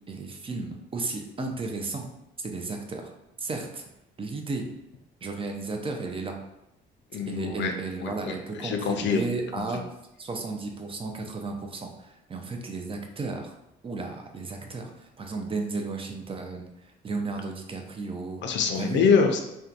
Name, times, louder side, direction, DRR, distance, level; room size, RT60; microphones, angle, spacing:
voice 1, 0.1-2.1 2.4-3.1 3.4-3.8 4.2-4.7 5.2-6.4 7.1-9.8 10.2-13.5 13.8-18.4 18.7-19.0, right 3 dB, 30° right, 3 dB, 0.4 m, -34 dB
voice 2, 7.1-7.7 8.0-8.3 8.6-9.2 9.6-9.7 18.4-19.4, left 6 dB, 65° left, 4 dB, 0.4 m, -24 dB
2.7 x 2.2 x 2.4 m, 0.87 s
cardioid pair, 90°, 20 cm